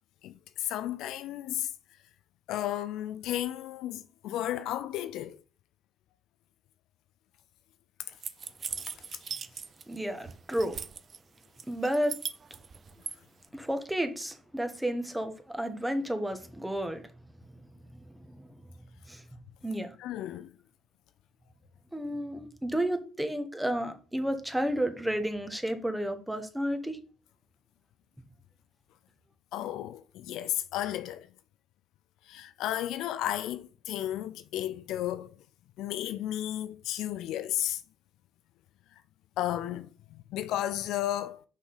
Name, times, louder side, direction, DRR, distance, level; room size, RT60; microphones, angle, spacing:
voice 1, 0.2-1.7 2.5-5.4 20.0-20.5 29.5-31.3 32.3-35.3 35.8-37.8 39.4-41.4, left 12 dB, 65° left, 0.4 m, -33 dB
sound 1, 8.2-10.0 10.2-11.2 11.6-13.1, right 6 dB, 45° right, 0.7 m, -38 dB
voice 2, 9.9-10.8 11.7-12.1 13.5-17.0 17.5-17.6 17.9-18.5 19.1-19.2 19.6-19.9 21.9-27.0, right 1 dB, 5° right, 1.5 m, -32 dB
5.8 x 5.7 x 4.0 m
hypercardioid pair, 50°, 0 cm